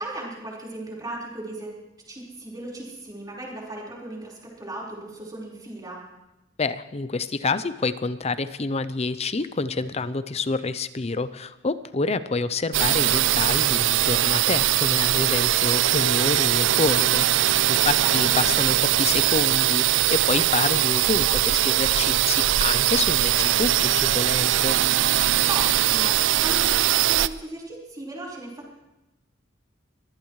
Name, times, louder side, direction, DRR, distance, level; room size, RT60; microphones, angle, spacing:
voice 1, 0.0-1.7 2.1-6.0 17.8-18.5 25.5-28.8, right 2 dB, 20° right, -4 dB, 4.5 m, -36 dB
voice 2, 6.6-24.8, left 3 dB, 35° left, 14 dB, 0.6 m, -28 dB
sound 1, 12.7-27.3, right 13 dB, 75° right, 0.4 m, -21 dB
23.5 x 16.0 x 3.2 m, 0.99 s
head